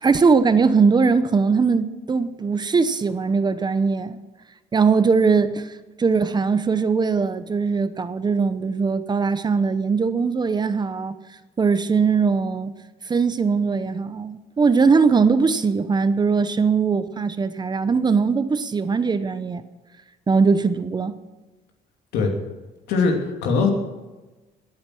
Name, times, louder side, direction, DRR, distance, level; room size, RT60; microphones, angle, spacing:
voice 1, 0.0-4.2 4.7-11.2 11.6-12.7 13.1-19.6 20.3-21.2, right 5 dB, 25° right, 0.9 m, -20 dB
voice 2, 22.9-23.7, left 4 dB, 85° left, 2.9 m, -21 dB
22.0 x 8.6 x 6.3 m
cardioid pair, 110°, 17 cm